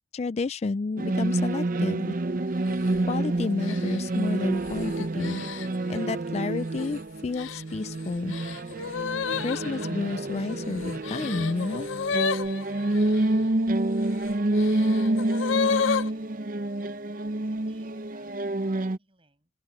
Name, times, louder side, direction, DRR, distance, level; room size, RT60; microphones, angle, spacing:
voice 1, 0.1-2.2 3.1-5.5 5.9-8.4 9.4-11.9, left 3 dB, 35° left, 0.3 m, -30 dB
sound 1, 1.0-19.0, right 2 dB, 45° right, 0.7 m, -28 dB
sound 2, 2.6-3.0 3.6-6.0 6.6-7.0 7.4-13.2 14.0-16.1, left 6 dB, 85° left, 0.6 m, -32 dB
voice 2, 15.7-16.3 17.1-19.5, right 2 dB, 30° right, 6.9 m, -59 dB
open air
head